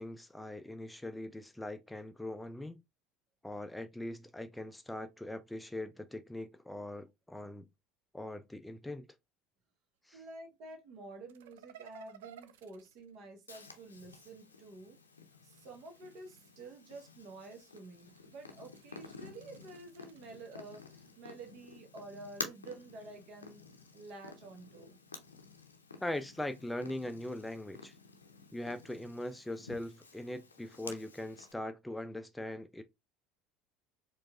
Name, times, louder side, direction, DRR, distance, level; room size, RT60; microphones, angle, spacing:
voice 1, 0.0-2.8 3.4-7.7 8.1-9.1 10.1-10.2 26.0-28.0 28.5-32.8, left 1 dB, 5° left, 0.4 m, -41 dB
voice 2, 10.1-15.0 15.4-23.6 23.9-25.0, right 2 dB, 50° right, 1.1 m, -50 dB
sound 1, 11.3-14.0 15.3-16.8 17.4-21.7, right 10 dB, 75° right, 0.3 m, -59 dB
Purr, 13.5-31.5, left 4 dB, 85° left, 0.5 m, -51 dB
4.5 x 2.4 x 2.4 m
figure-of-eight pair, 65°, 0 cm